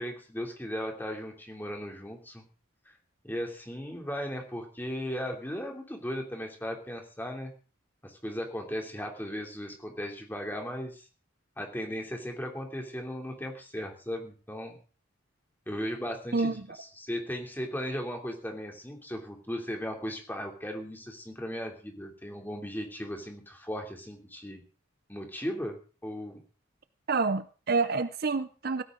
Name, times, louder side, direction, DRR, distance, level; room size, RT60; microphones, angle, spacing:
voice 1, 0.0-2.4 2.9-3.0 3.2-7.5 8.0-11.1 11.6-14.8 15.7-24.6 25.1-25.8 26.0-26.4, equal, 10° left, 2 dB, 2.9 m, -37 dB
voice 2, 27.1-28.8, right 4 dB, 50° right, 13 dB, 0.6 m, -28 dB
16.5 x 14.0 x 3.9 m, 0.37 s
head